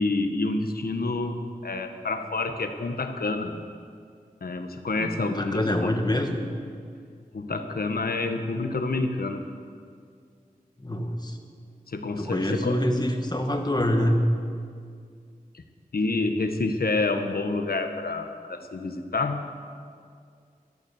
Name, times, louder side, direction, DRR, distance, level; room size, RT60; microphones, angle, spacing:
voice 1, 0.0-3.5 4.4-6.0 7.3-9.4 11.9-12.8 15.5-15.6 15.9-19.5, left 3 dB, 85° left, 6 dB, 1.2 m, -28 dB
voice 2, 5.0-6.4 10.8-11.4 12.1-14.3, left 1 dB, 25° left, 4 dB, 1.7 m, -25 dB
13.5 x 12.5 x 7.2 m, 2.2 s
wide cardioid pair, 60°, 15 cm